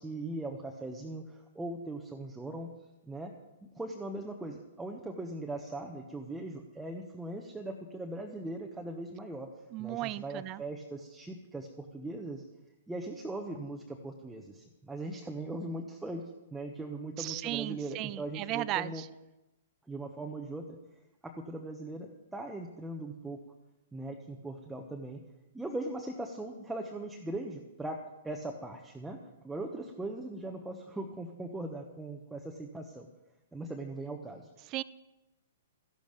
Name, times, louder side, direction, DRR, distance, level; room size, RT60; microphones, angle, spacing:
voice 1, 0.0-2.7 3.0-3.3 3.7-9.5 9.8-12.4 12.9-16.2 16.5-19.0 19.9-20.8 21.2-23.4 23.9-25.2 25.5-33.1 33.5-34.5, right 2 dB, 5° right, 2 dB, 1.1 m, -40 dB
voice 2, 9.7-10.6 17.2-19.1 34.7-34.8, right 16 dB, 30° right, 18 dB, 0.4 m, -35 dB
14.5 x 11.5 x 5.2 m, 0.99 s
figure-of-eight pair, 115°, 0 cm